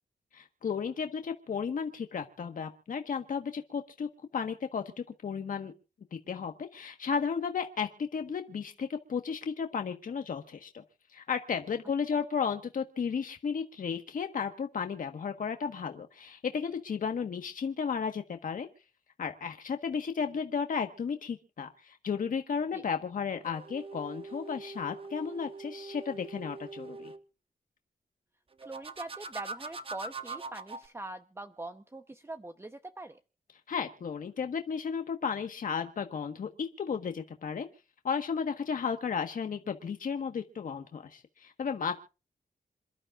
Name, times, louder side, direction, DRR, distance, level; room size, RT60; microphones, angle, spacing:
voice 1, 0.3-4.1 4.3-4.8 5.2-5.7 6.1-10.8 11.1-18.7 19.2-27.1 33.7-37.7 38.0-42.0, left 6 dB, 65° left, 6 dB, 1.5 m, -34 dB
sound 1, 23.4-27.2 28.6-30.9, right 3 dB, 40° right, 1.2 m, -43 dB
voice 2, 28.6-33.2, right 2 dB, 15° right, 7 dB, 1.0 m, -43 dB
27.5 x 12.0 x 2.5 m, 0.34 s
cardioid pair, 95°, 15 cm